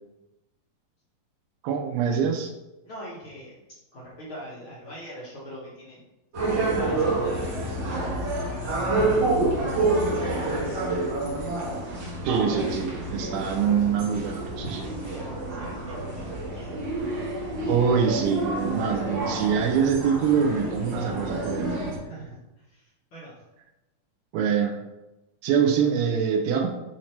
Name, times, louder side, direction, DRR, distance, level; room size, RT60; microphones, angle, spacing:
voice 1, 1.6-2.5 12.2-14.9 17.7-21.7 24.3-24.8 25.4-26.7, right 7 dB, 85° right, 2 dB, 2.6 m, -24 dB
voice 2, 2.8-6.0 6.6-9.4 10.2-10.9 14.6-16.7 22.0-23.4, equal, 65° left, -6 dB, 1.3 m, -43 dB
sound 1, 6.3-22.0, right 2 dB, 50° right, 1.4 m, -28 dB
8.0 x 2.9 x 4.3 m, 1.0 s
omnidirectional pair, 4.1 m